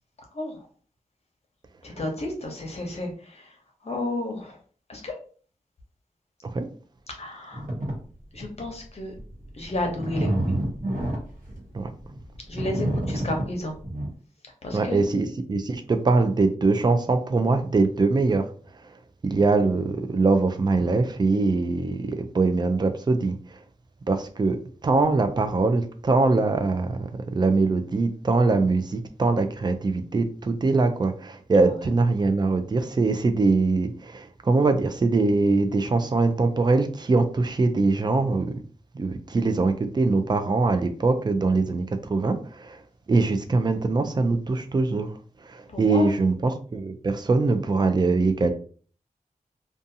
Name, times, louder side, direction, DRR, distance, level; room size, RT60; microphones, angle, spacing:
voice 1, 0.3-0.7 1.8-4.6 4.9-5.1 7.1-7.7 8.3-9.1 9.5-10.5 12.5-13.8 14.4-15.0 31.6-31.9 45.7-46.1, left 1 dB, 50° left, 0.8 m, -32 dB
sound 1, 7.5-7.9 8.4-8.7 9.2-14.1, right 1 dB, 85° right, 1.0 m, -28 dB
voice 2, 14.7-18.5 18.8-18.9 19.2-23.6 24.1-38.6 38.9-42.8 43.1-48.5, right 3 dB, 30° right, 0.4 m, -23 dB
2.6 x 2.3 x 2.7 m
wide cardioid pair, 90°, 14 cm